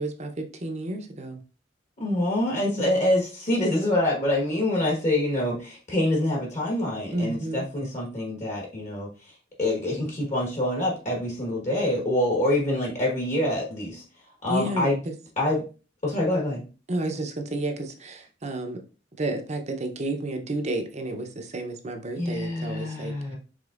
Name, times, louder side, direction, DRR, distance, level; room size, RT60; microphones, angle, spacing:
voice 1, 0.0-1.4 2.8-2.9 7.1-7.7 14.5-15.1 16.9-18.8 19.1-23.1, right 1 dB, 40° right, 5 dB, 0.7 m, -31 dB
voice 2, 2.0-9.1 9.6-14.0 14.4-15.0 15.4-15.6 16.0-16.6 22.2-23.4, left 1 dB, 40° left, -2 dB, 1.3 m, -26 dB
5.0 x 3.5 x 2.5 m, 0.34 s
head